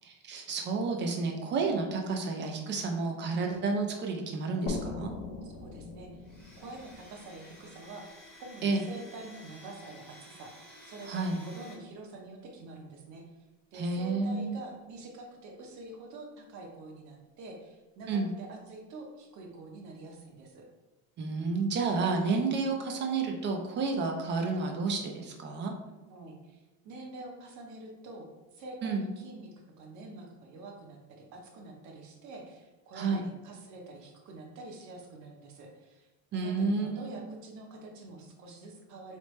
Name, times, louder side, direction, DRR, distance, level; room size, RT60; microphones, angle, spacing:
voice 1, 0.0-5.1 8.6-8.8 11.1-11.4 13.7-14.6 18.1-18.3 21.2-25.7 28.8-29.1 32.9-33.3 36.3-37.3, right 4 dB, 30° right, 3 dB, 0.5 m, -30 dB
sound 1, 4.7-8.2, left 3 dB, 75° left, 0.8 m, -40 dB
voice 2, 5.4-6.3 6.6-8.1 8.4-10.5 10.8-13.2 13.7-20.7 26.1-39.2, right 2 dB, 45° right, 2 dB, 0.9 m, -46 dB
Domestic sounds home sounds, 6.2-11.7, left 1 dB, 5° left, 0.9 m, -53 dB
4.1 x 3.3 x 3.1 m, 1.1 s
cardioid pair, 160°, 39 cm